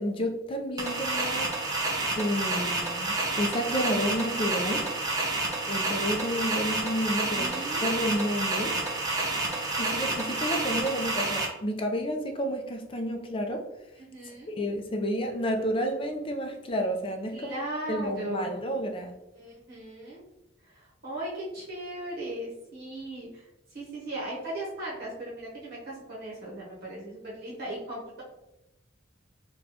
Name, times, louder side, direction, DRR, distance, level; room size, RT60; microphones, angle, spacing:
voice 1, 0.0-1.6 2.2-4.9 5.7-7.5 7.8-8.8 9.8-13.6 14.5-17.6 17.9-19.1, equal, 25° left, 4 dB, 0.4 m, -30 dB
sound 1, 0.8-11.4, right 2 dB, 20° right, 0.6 m, -29 dB
voice 2, 7.2-7.9 14.0-14.5 17.3-18.5 19.4-20.2 20.6-23.4 23.7-28.2, right 1 dB, 50° right, -6 dB, 0.9 m, -37 dB
4.2 x 2.3 x 2.8 m, 0.94 s
head